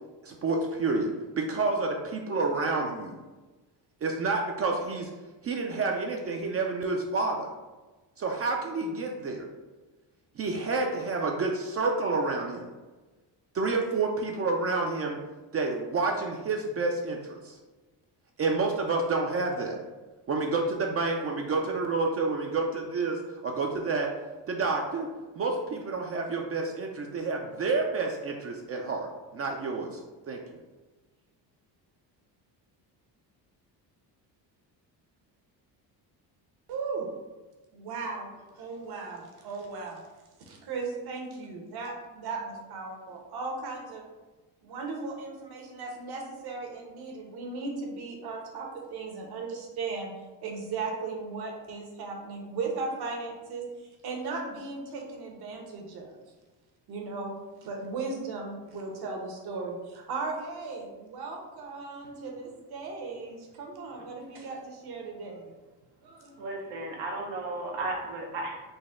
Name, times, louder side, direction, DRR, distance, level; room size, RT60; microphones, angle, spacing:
voice 1, 0.2-1.1 1.4-3.2 4.0-5.1 5.4-7.5 8.2-9.5 10.4-12.7 13.5-15.2 15.5-17.6 18.4-19.8 20.3-24.1 24.5-25.1 25.4-30.0 30.3-30.4, right 3 dB, 35° right, 1 dB, 0.4 m, -29 dB
voice 2, 36.7-37.1 37.7-40.0 40.4-44.0 44.6-50.1 50.4-56.2 56.9-57.3 57.6-65.5 66.0-66.5, right 4 dB, 60° right, 1 dB, 1.0 m, -37 dB
voice 3, 66.4-68.6, right 2 dB, 90° right, -1 dB, 0.8 m, -34 dB
4.0 x 2.2 x 3.6 m, 1.2 s
cardioid pair, 100°, 42 cm